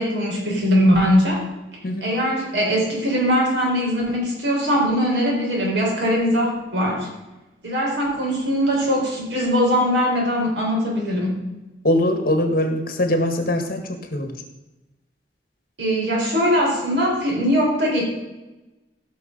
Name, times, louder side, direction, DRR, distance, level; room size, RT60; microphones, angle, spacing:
voice 1, 0.0-1.4 2.0-7.1 7.6-11.4 15.8-18.0, equal, 80° right, -2 dB, 4.5 m, -21 dB
voice 2, 11.8-13.8 14.1-14.3, left 1 dB, 55° left, 5 dB, 1.8 m, -21 dB
16.0 x 6.3 x 5.4 m, 1.0 s
head